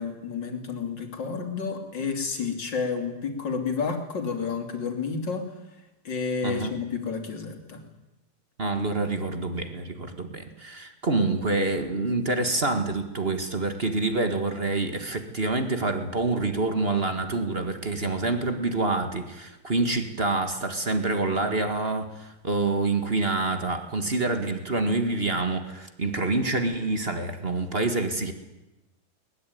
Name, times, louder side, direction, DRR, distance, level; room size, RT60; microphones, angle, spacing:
voice 1, 0.0-5.5 6.0-7.8, left 5 dB, 35° left, 4 dB, 3.4 m, -30 dB
voice 2, 8.6-28.3, right 3 dB, 40° right, 8 dB, 0.8 m, -27 dB
22.5 x 20.5 x 9.3 m, 1.0 s
omnidirectional pair, 4.0 m